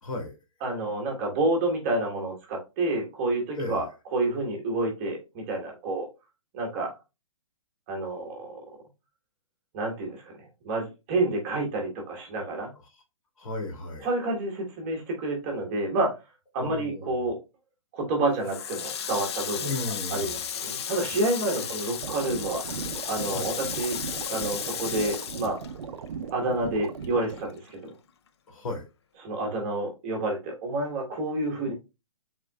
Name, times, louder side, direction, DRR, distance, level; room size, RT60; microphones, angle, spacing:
voice 1, 0.0-0.4 3.6-3.8 13.4-14.1 16.6-17.3 19.6-20.3 21.5-21.7 23.3-23.5 28.5-28.8, left 2 dB, 80° left, 2 dB, 2.3 m, -34 dB
voice 2, 0.6-3.8 4.1-6.1 6.5-6.9 7.9-8.6 9.7-12.7 14.0-16.1 16.5-17.4 17.9-19.7 20.1-24.0 24.3-25.6 26.3-27.9 29.2-31.7, right 2 dB, 25° right, 0 dB, 1.3 m, -29 dB
Water tap faucet, 18.4-26.3 26.6-27.9, left 8 dB, 55° left, 0.5 m, -34 dB
sound 1, 22.0-27.5, right 6 dB, 85° right, 0.6 m, -38 dB
5.5 x 3.8 x 2.3 m, 0.26 s
hypercardioid pair, 170°, 17 cm